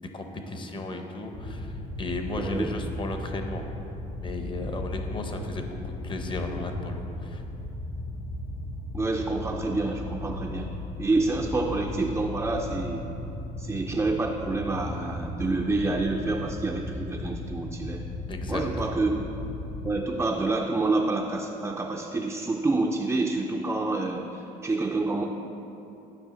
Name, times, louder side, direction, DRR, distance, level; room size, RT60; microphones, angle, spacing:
voice 1, 0.0-1.7 2.0-3.7 4.2-7.4 18.3-19.0, left 2 dB, 30° left, 4 dB, 0.8 m, -35 dB
sound 1, 1.3-19.9, left 2 dB, 60° left, 1.2 m, -36 dB
voice 2, 2.4-2.7 8.9-10.7 11.0-13.1 13.6-18.0 18.5-19.3 19.8-25.2, right 3 dB, 15° right, 1 dB, 0.4 m, -28 dB
10.5 x 4.8 x 3.8 m, 2.9 s
cardioid pair, 110°, 17 cm